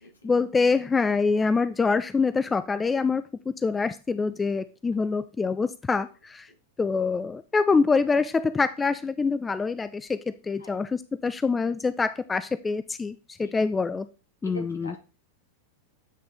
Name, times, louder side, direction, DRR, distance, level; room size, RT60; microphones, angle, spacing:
voice 1, 0.2-6.5 6.8-14.1 14.4-15.0, left 4 dB, 15° left, 14 dB, 0.3 m, -25 dB
voice 2, 14.4-15.0, equal, 75° left, 3 dB, 1.9 m, -42 dB
9.0 x 4.2 x 3.5 m, 0.32 s
figure-of-eight pair, 90°, 0 cm